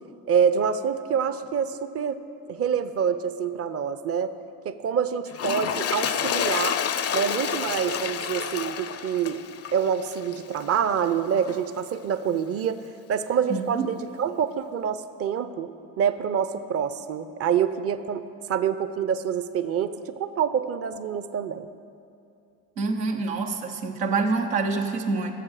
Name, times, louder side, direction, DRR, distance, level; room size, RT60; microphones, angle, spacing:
voice 1, 0.3-2.2 2.5-4.3 4.6-6.8 7.1-9.4 9.7-12.8 13.1-21.7, right 7 dB, 30° right, 12 dB, 0.6 m, -26 dB
Toilet flush, 5.3-10.8 11.5-11.6, left 8 dB, 30° left, 0.5 m, -29 dB
voice 2, 13.5-13.9 22.8-25.3, right 4 dB, 90° right, 2 dB, 0.9 m, -26 dB
13.5 x 7.4 x 4.9 m, 2.5 s
hypercardioid pair, 50°, 48 cm